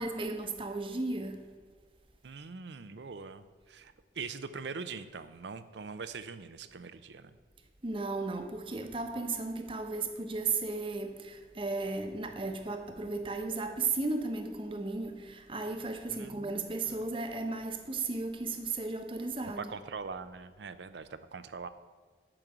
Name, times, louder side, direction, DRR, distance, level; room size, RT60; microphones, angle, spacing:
voice 1, 0.0-1.5 7.8-19.7, right 3 dB, 30° right, 0.9 m, -35 dB
voice 2, 2.2-7.4 16.1-16.9 19.6-21.7, right 5 dB, 80° right, 0.6 m, -43 dB
8.7 x 6.1 x 7.9 m
head